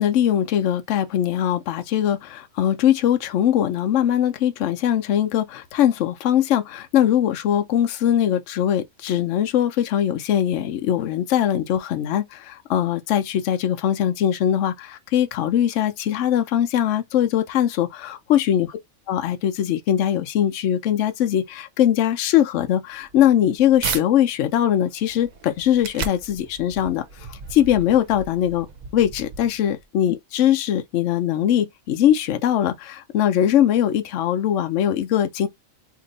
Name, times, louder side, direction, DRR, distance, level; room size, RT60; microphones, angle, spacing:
voice 1, 0.0-18.7 19.1-28.7 28.9-35.5, left 10 dB, 65° left, 0.9 m, -21 dB
sound 1, 22.9-24.0 24.6-29.8, right 5 dB, 65° right, 0.4 m, -35 dB
2.8 x 2.6 x 3.9 m
omnidirectional pair, 1.4 m